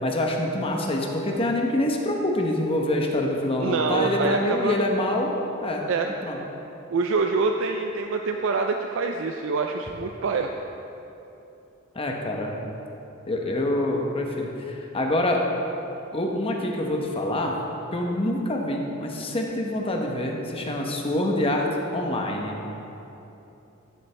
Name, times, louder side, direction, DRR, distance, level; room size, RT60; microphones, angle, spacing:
voice 1, 0.0-5.3 5.6-5.8 6.2-6.4 11.9-12.5 13.3-15.4 16.1-17.5 17.9-21.7 21.9-22.6, left 1 dB, 30° left, 1 dB, 0.9 m, -26 dB
voice 2, 3.6-4.8 5.9-6.1 6.9-10.5, right 4 dB, 70° right, 4 dB, 0.4 m, -25 dB
12.0 x 7.2 x 3.4 m, 2.9 s
head